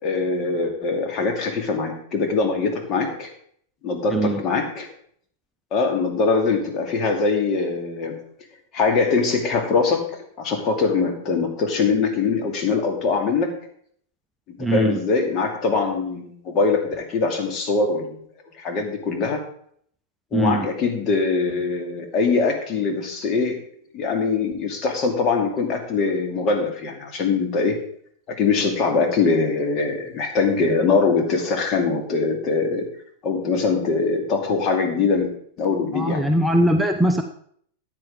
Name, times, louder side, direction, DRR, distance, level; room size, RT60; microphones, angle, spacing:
voice 1, 0.0-3.3 3.8-4.9 5.7-8.2 8.7-13.6 14.6-18.2 18.6-19.4 20.3-23.6 23.9-27.8 28.3-32.9 33.2-35.3 35.6-36.2, left 4 dB, 40° left, 3 dB, 2.4 m, -22 dB
voice 2, 4.1-4.4 14.6-15.0 20.3-20.7 35.9-37.2, right 1 dB, 5° right, 4 dB, 0.9 m, -21 dB
13.5 x 9.1 x 3.7 m, 0.62 s
figure-of-eight pair, 95°, 0 cm